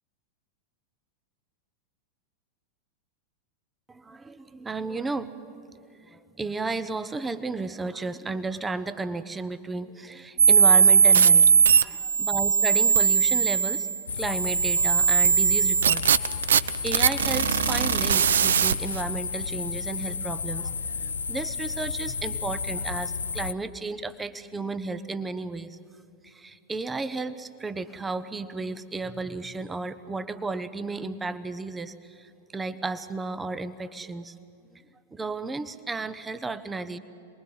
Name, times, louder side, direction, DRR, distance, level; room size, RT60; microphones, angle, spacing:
voice 1, 3.9-5.7 6.1-11.5 11.7-13.9 14.1-20.7 21.0-25.8 26.2-34.3 34.7-34.8 35.1-37.0, right 3 dB, 10° right, 13 dB, 0.9 m, -33 dB
sound 1, 10.4-19.0, right 7 dB, 65° right, 0.6 m, -20 dB
sound 2, 14.1-23.5, left 5 dB, 75° left, 0.6 m, -32 dB
27.5 x 21.0 x 7.8 m, 2.7 s
figure-of-eight pair, 90°, 0 cm